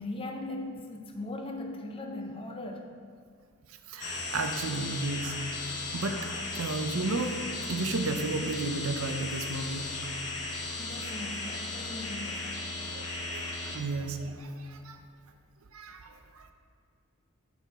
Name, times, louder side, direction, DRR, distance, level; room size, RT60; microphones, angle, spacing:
voice 1, 0.0-3.0 10.8-12.8, left 2 dB, 25° left, 3 dB, 0.5 m, -39 dB
voice 2, 3.9-5.3 5.9-6.2 6.5-7.4 7.7-9.9 12.9-15.0 15.7-16.5, right 3 dB, 70° right, 6 dB, 0.6 m, -33 dB
sound 1, 4.0-13.8, left 2 dB, 85° left, 1.1 m, -36 dB
6.0 x 5.6 x 4.2 m, 2.2 s
head